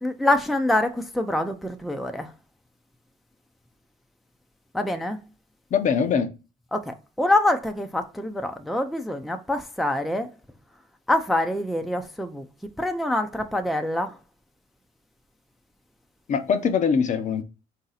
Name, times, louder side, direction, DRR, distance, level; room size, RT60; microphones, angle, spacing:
voice 1, 0.0-2.3 4.7-5.2 6.7-10.3 11.1-12.5 12.8-14.2, left 1 dB, ahead, 0.4 m, -25 dB
voice 2, 5.7-6.3 16.3-17.4, left 6 dB, 45° left, 0.6 m, -22 dB
3.9 x 2.7 x 3.9 m
cardioid pair, 110°, 17 cm